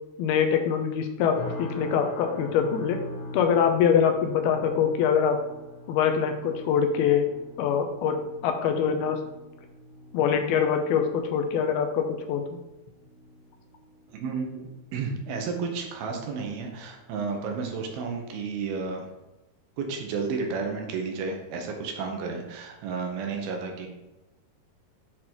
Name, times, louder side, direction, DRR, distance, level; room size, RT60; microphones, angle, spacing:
voice 1, 0.2-3.0 3.3-5.4 5.9-7.3 7.6-8.2 8.4-9.2 10.1-12.4, left 7 dB, 90° left, 5 dB, 2.6 m, -24 dB
sound 1, 1.4-16.6 16.9-17.3 17.8-18.0, left 1 dB, 65° left, 1.0 m, -43 dB
voice 2, 14.1-19.1 19.8-23.9, right 4 dB, 75° right, 3 dB, 2.9 m, -32 dB
7.9 x 4.0 x 4.5 m, 1.0 s
omnidirectional pair, 4.4 m